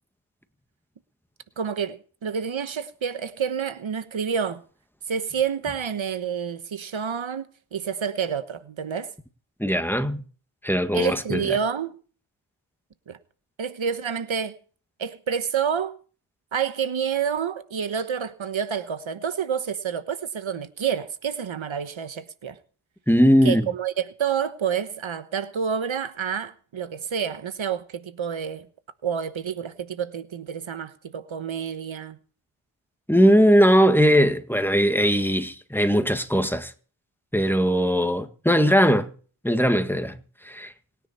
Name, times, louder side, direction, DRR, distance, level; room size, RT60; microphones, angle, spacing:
voice 1, 1.6-4.6 5.1-7.5 7.7-9.1 10.9-11.9 13.1-13.2 13.6-14.6 15.0-15.9 16.5-22.6 23.4-28.7 29.0-32.2, right 7 dB, 70° right, 1.2 m, -28 dB
voice 2, 9.6-10.2 10.6-11.4 23.1-23.7 33.1-36.7 37.3-39.1 39.4-40.2 40.5-40.7, equal, 5° left, 1.7 m, -19 dB
26.5 x 10.0 x 4.3 m
cardioid pair, 55°, 49 cm